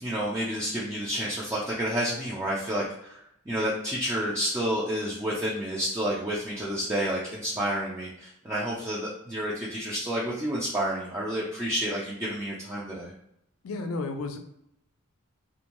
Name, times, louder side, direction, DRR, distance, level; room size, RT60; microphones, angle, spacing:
voice 1, 0.0-13.1, equal, 15° right, -6 dB, 0.4 m, -30 dB
voice 2, 13.6-14.4, left 3 dB, 75° left, 6 dB, 0.4 m, -32 dB
2.5 x 2.2 x 2.9 m, 0.77 s
head